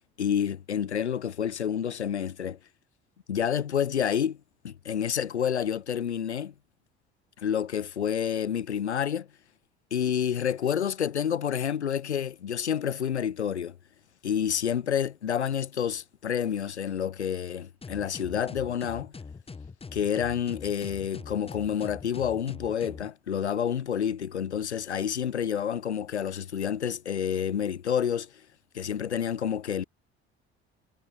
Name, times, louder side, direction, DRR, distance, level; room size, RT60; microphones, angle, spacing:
voice 1, 0.2-2.6 3.3-4.4 4.6-6.5 7.4-9.3 9.9-13.7 14.2-19.1 19.9-28.3 28.7-29.8, left 8 dB, 90° left, 0.7 m, -29 dB
sound 1, 17.8-23.1, left 4 dB, 15° left, 1.0 m, -43 dB
figure-of-eight pair, 55°, 33 cm